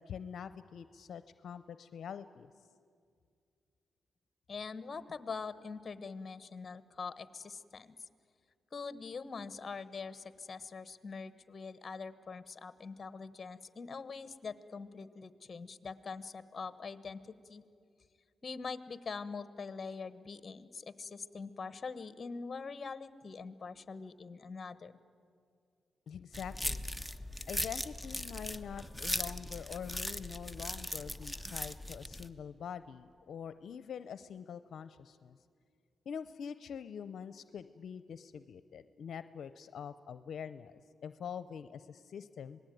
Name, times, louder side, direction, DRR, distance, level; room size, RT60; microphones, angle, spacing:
voice 1, 0.0-2.5 26.1-26.9 27.5-35.4 36.1-42.6, left 7 dB, 70° left, 13 dB, 0.6 m, -45 dB
voice 2, 4.5-7.9 8.7-17.6 18.4-24.9, left 4 dB, 40° left, 14 dB, 1.1 m, -43 dB
sound 1, 26.3-32.3, left 1 dB, ahead, 1.0 m, -39 dB
26.5 x 19.5 x 9.3 m, 2.3 s
cardioid pair, 95°, 0 cm